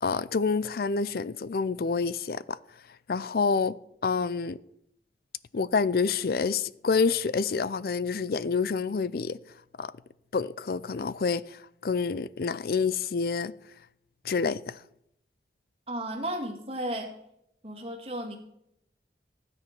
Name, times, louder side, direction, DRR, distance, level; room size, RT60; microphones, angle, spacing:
voice 1, 0.0-2.6 3.1-3.7 4.0-4.6 5.5-9.4 9.8-9.9 10.3-13.5 14.2-14.8, left 5 dB, 55° left, 0.4 m, -28 dB
voice 2, 15.9-17.1 17.6-18.4, right 1 dB, 35° right, 2.4 m, -34 dB
13.0 x 9.7 x 6.0 m
head